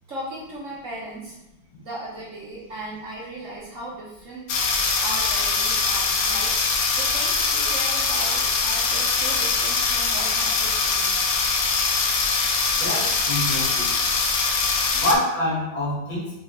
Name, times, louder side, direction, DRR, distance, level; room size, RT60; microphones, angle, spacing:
voice 1, 0.1-1.4 1.8-4.5 5.0-6.5 7.0-11.5, right 1 dB, 45° right, -6 dB, 1.3 m, -37 dB
sound 1, 4.5-15.1, left 4 dB, 65° left, 0.9 m, -22 dB
voice 2, 12.7-13.9 14.9-16.4, left 1 dB, 85° left, -7 dB, 2.6 m, -26 dB
5.5 x 3.0 x 3.0 m, 0.91 s
omnidirectional pair, 2.1 m